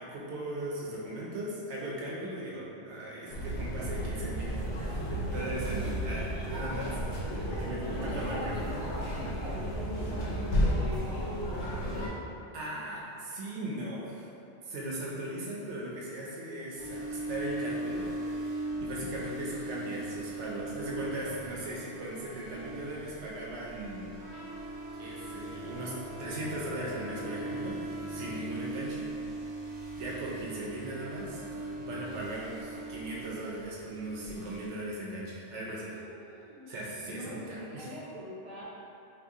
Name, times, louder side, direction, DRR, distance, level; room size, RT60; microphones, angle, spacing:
voice 1, 0.0-8.8 12.5-14.3 14.6-18.1 18.5-24.1 25.0-27.8 28.1-29.1 30.0-36.0 36.7-37.9, right 1 dB, 85° right, -5 dB, 0.9 m, -38 dB
sound 1, 3.3-12.1, equal, 90° left, 0.9 m, -32 dB
voice 2, 5.8-6.4 7.9-11.8 21.8-22.5 35.8-36.7 37.0-38.6, equal, 40° right, -10 dB, 0.9 m, -45 dB
sound 2, 16.8-34.7, right 2 dB, 65° right, 0.3 m, -40 dB
Trumpet, 24.2-28.4, left 2 dB, 45° left, 0.8 m, -46 dB
2.8 x 2.3 x 3.5 m, 2.7 s
omnidirectional pair, 1.2 m